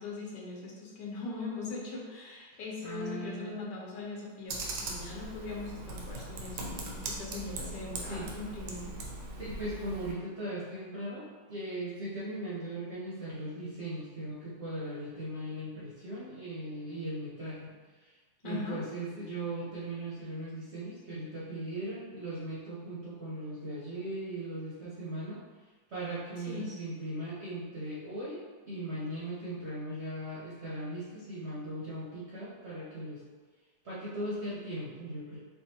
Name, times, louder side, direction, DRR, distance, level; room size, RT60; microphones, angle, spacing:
voice 1, 0.0-8.9 18.4-18.9 26.4-26.7, left 3 dB, 75° left, -3 dB, 1.3 m, -40 dB
voice 2, 2.8-3.6 8.0-8.3 9.4-17.7 18.0-18.1 18.4-25.4 25.9-28.4 28.7-33.2 33.8-35.4, right 1 dB, 50° right, -9 dB, 0.8 m, -38 dB
Computer keyboard, 4.5-10.1, right 2 dB, 80° right, 1.2 m, -40 dB
4.7 x 2.3 x 2.8 m, 1.4 s
omnidirectional pair, 1.9 m